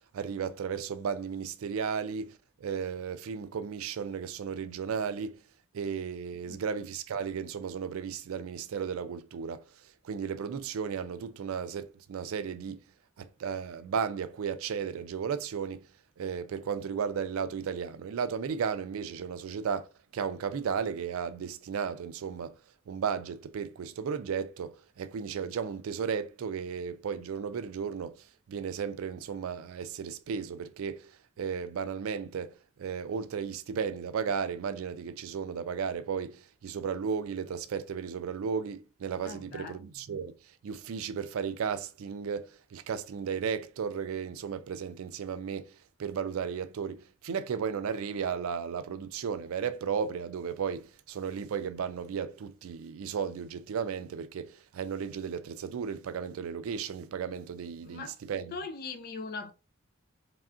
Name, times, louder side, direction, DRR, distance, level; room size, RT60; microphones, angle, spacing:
voice 1, 0.1-5.3 5.7-9.6 10.0-12.8 13.2-15.8 16.2-19.9 20.1-22.5 22.9-28.2 28.5-31.1 31.4-40.3 40.6-45.7 46.0-58.6, right 6 dB, 80° right, 0.4 m, -34 dB
voice 2, 6.3-6.6 39.2-39.8 57.8-58.2 58.5-59.5, left 4 dB, 45° left, 0.4 m, -40 dB
3.3 x 2.4 x 2.4 m
head